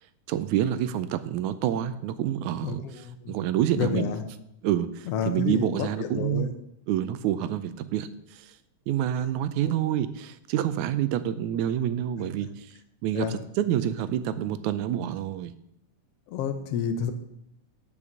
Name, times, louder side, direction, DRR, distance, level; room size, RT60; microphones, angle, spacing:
voice 1, 0.3-2.8 3.3-4.1 4.6-6.5 6.9-8.1 8.9-12.7 13.0-13.3 13.6-15.5, right 11 dB, 80° right, 13 dB, 2.0 m, -27 dB
voice 2, 2.6-3.4 3.7-4.3 5.1-6.5 9.6-9.8 13.1-13.4 16.3-17.1, left 7 dB, 65° left, 7 dB, 1.7 m, -30 dB
8.6 x 6.8 x 7.4 m, 0.76 s
omnidirectional pair, 3.5 m